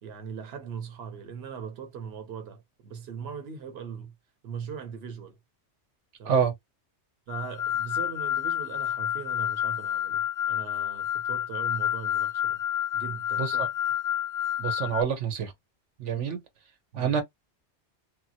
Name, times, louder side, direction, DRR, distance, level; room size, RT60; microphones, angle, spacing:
voice 1, 0.0-4.1 4.4-5.4 6.2-6.4 7.3-12.6 12.9-13.7 16.9-17.1, right 6 dB, 65° right, 1.0 m, -40 dB
sound 1, 7.3-15.0, left 10 dB, 60° left, 0.6 m, -29 dB
voice 2, 14.6-15.5 16.0-16.4 16.9-17.2, right 7 dB, 85° right, 1.2 m, -27 dB
2.8 x 2.4 x 2.7 m
omnidirectional pair, 1.2 m